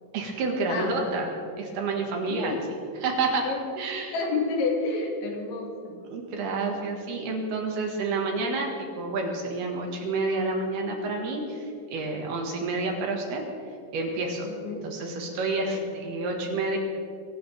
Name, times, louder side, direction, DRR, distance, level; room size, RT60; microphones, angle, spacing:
voice 1, 0.1-1.3 1.6-2.6 3.0-3.5 3.8-4.1 6.1-13.4 13.9-14.5 14.8-16.8, right 3 dB, 65° right, 2 dB, 3.5 m, -29 dB
voice 2, 0.7-1.2 2.3-2.6 3.4-3.7 4.1-6.0 14.4-14.8 15.7-15.8, left 3 dB, 85° left, 0 dB, 4.6 m, -30 dB
23.5 x 17.0 x 3.5 m, 2.4 s
omnidirectional pair, 5.2 m